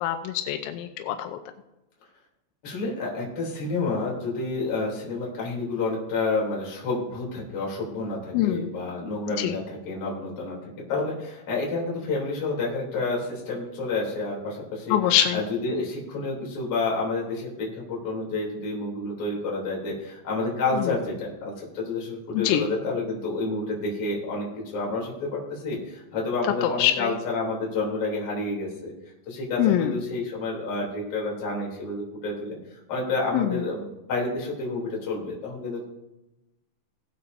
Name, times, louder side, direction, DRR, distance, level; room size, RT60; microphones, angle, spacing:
voice 1, 0.0-1.4 8.3-8.8 9.4-9.5 14.9-15.4 20.7-20.8 22.3-22.6 26.8-26.9 29.6-29.9 33.3-33.5, left 12 dB, 85° left, 7 dB, 2.7 m, -23 dB
voice 2, 2.6-24.5 24.7-28.9 29.3-35.8, left 3 dB, 35° left, -3 dB, 3.5 m, -29 dB
19.5 x 8.5 x 2.7 m, 0.94 s
omnidirectional pair, 5.9 m